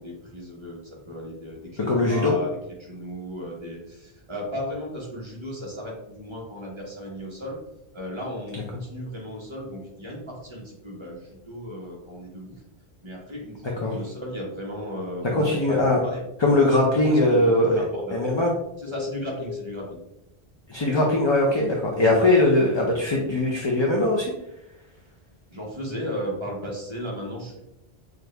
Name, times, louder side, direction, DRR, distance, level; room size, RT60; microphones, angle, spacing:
voice 1, 0.0-7.6 7.9-12.6 13.0-16.2 17.1-18.1 18.8-20.0 22.8-22.9 25.5-27.6, equal, 30° right, -3 dB, 1.2 m, -35 dB
voice 2, 1.9-2.3 13.8-13.9 15.3-16.0 16.4-17.8 18.1-18.5 20.7-24.3, left 2 dB, 30° left, -2 dB, 0.6 m, -20 dB
sound 1, 17.9-18.6 18.9-19.8 21.3-21.4 22.0-22.2, left 7 dB, 80° left, 1.0 m, -37 dB
6.2 x 2.5 x 3.3 m, 0.87 s
omnidirectional pair, 1.1 m